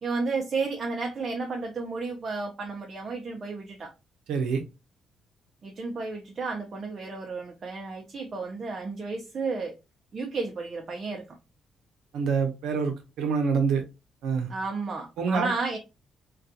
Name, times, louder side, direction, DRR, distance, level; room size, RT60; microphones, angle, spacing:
voice 1, 0.0-3.9 5.6-9.7 10.1-11.4 14.5-15.8, right 4 dB, 45° right, 0.6 m, -32 dB
voice 2, 4.3-4.6 12.1-13.8 14.2-14.5 15.2-15.5, right 5 dB, 85° right, 0.7 m, -26 dB
2.3 x 2.3 x 2.6 m
cardioid pair, 90°, 0 cm